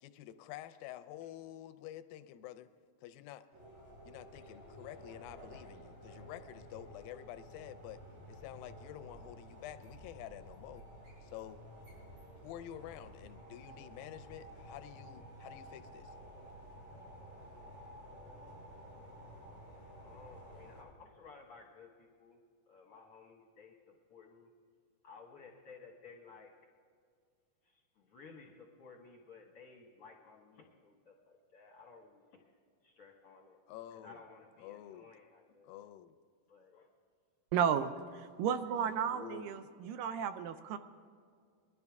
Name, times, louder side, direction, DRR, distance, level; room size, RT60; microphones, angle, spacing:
voice 1, 0.0-2.7 3.0-3.5 4.1-8.0 8.3-10.9 11.2-11.6 12.4-16.1 33.7-34.2 34.6-35.1 35.6-36.1 39.1-39.7, left 12 dB, 85° left, 11 dB, 2.4 m, -49 dB
sound 1, 3.5-20.8, equal, 55° right, 5.8 m, -52 dB
voice 2, 20.0-22.4 22.7-24.5 25.0-26.5 27.6-32.4 32.8-33.6 33.9-35.7 36.5-36.9, left 4 dB, 60° left, 0 dB, 1.5 m, -56 dB
voice 3, 37.5-37.9 38.4-40.8, right 8 dB, 80° right, 10 dB, 2.1 m, -33 dB
21.5 x 12.0 x 3.5 m, 2.1 s
omnidirectional pair, 4.1 m